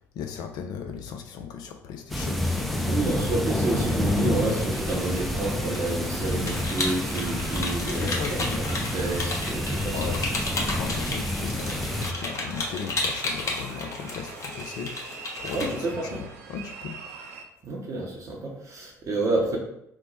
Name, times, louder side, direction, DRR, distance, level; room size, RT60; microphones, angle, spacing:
voice 1, 0.1-3.3 7.9-8.6 9.9-15.7 16.1-16.2 16.5-17.0, left 7 dB, 60° left, 5 dB, 0.4 m, -37 dB
sound 1, 2.1-12.1, left 1 dB, ahead, 0.5 m, -28 dB
voice 2, 2.9-10.0 15.5-16.3 17.6-19.6, right 2 dB, 45° right, -2 dB, 0.7 m, -29 dB
sound 2, 3.6-17.4, right 5 dB, 75° right, 0.4 m, -43 dB
sound 3, 4.8-15.9, left 2 dB, 40° left, 1.0 m, -34 dB
3.0 x 2.1 x 4.1 m, 0.78 s
hypercardioid pair, 55°, 8 cm